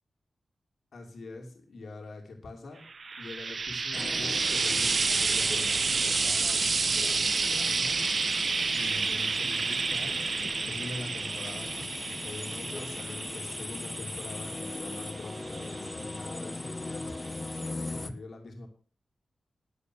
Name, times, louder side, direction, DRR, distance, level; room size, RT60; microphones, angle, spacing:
voice 1, 0.9-2.9 3.2-8.4 8.7-10.2 10.6-17.4 17.8-18.7, left 2 dB, 80° left, 2 dB, 3.2 m, -44 dB
Frying (food), 2.9-16.3 17.3-17.4, right 4 dB, 55° right, 0.6 m, -30 dB
sound 1, 3.9-18.1, left 2 dB, 30° left, 1.3 m, -39 dB
12.5 x 8.1 x 6.6 m, 0.40 s
cardioid pair, 75°, 0 cm